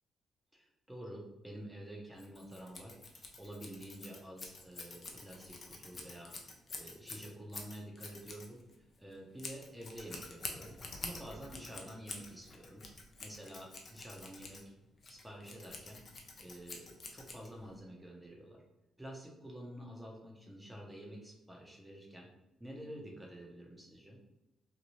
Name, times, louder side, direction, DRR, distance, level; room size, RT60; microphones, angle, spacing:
voice 1, 0.5-6.3 6.7-8.6 9.0-12.8 13.2-14.7 15.1-16.0 16.4-18.6 19.0-22.3 22.6-24.2, right 1 dB, 5° right, -1 dB, 0.8 m, -49 dB
Scissors, 2.2-17.8, left 3 dB, 40° left, 0.5 m, -48 dB
2.7 x 2.3 x 3.0 m, 0.91 s
cardioid pair, 90°, 0 cm